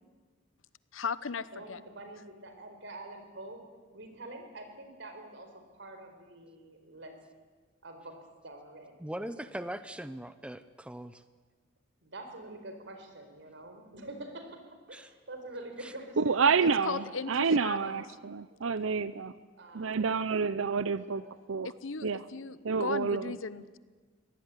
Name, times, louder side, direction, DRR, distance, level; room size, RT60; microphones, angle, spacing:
voice 1, 0.9-1.8 16.6-18.0 21.6-23.8, left 5 dB, 85° left, 16 dB, 0.9 m, -37 dB
voice 2, 1.5-3.6 3.9-7.1 7.8-8.1 8.4-9.7 12.0-14.6 14.9-16.3 16.8-17.1 17.5-18.1 18.5-18.6 19.6-20.4 20.7-21.3 22.2-22.6, right 2 dB, 65° right, 5 dB, 4.6 m, -46 dB
voice 3, 9.0-11.2 14.9-15.1 15.8-15.9, right 1 dB, 5° right, 12 dB, 0.7 m, -40 dB
voice 4, 16.2-19.3 19.7-21.2 21.5-21.7 22.0-22.2 22.6-23.3, right 5 dB, 90° right, 15 dB, 0.7 m, -28 dB
24.0 x 18.0 x 9.9 m, 1.4 s
head